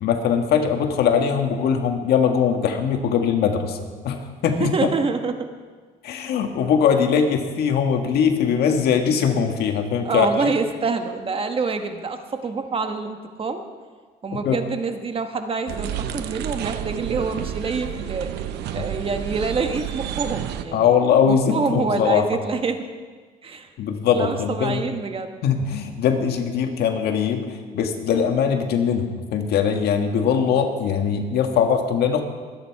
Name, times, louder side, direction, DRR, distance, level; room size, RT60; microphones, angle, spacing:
voice 1, 0.0-4.9 6.0-10.5 14.3-14.6 18.8-18.9 20.7-22.3 23.8-24.9 25.4-29.1 29.3-32.2, left 7 dB, 70° left, 4 dB, 1.7 m, -21 dB
voice 2, 4.6-5.5 10.0-13.6 14.2-18.3 18.7-20.9 21.3-22.8 23.4-23.7 24.1-25.4, right 4 dB, 35° right, 6 dB, 1.3 m, -26 dB
sound 1, 15.7-20.6, right 10 dB, 80° right, 0.9 m, -30 dB
22.5 x 9.5 x 4.7 m, 1.5 s
cardioid pair, 110°, 17 cm